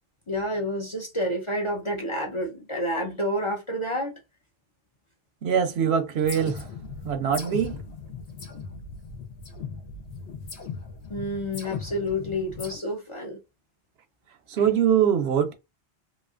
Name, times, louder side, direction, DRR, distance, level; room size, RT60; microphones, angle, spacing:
voice 1, 0.3-4.2 11.1-13.4, equal, 35° left, 0.6 m, -29 dB
voice 2, 5.4-6.7 7.0-7.8 14.5-15.5, right 8 dB, 70° right, 0.8 m, -23 dB
sound 1, 6.2-12.8, left 5 dB, 75° left, 1.4 m, -38 dB
3.0 x 2.7 x 2.4 m
omnidirectional pair, 1.1 m